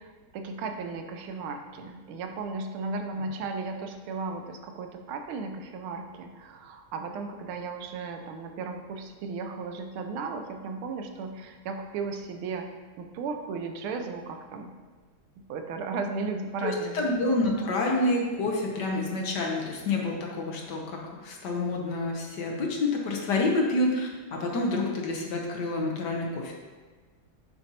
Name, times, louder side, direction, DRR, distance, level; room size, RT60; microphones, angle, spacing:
voice 1, 0.0-12.7 13.0-14.7 15.5-17.2, right 4 dB, 90° right, 5 dB, 1.5 m, -35 dB
voice 2, 16.6-26.5, left 2 dB, 65° left, -1 dB, 1.3 m, -28 dB
7.2 x 5.1 x 2.8 m, 1.4 s
omnidirectional pair, 2.2 m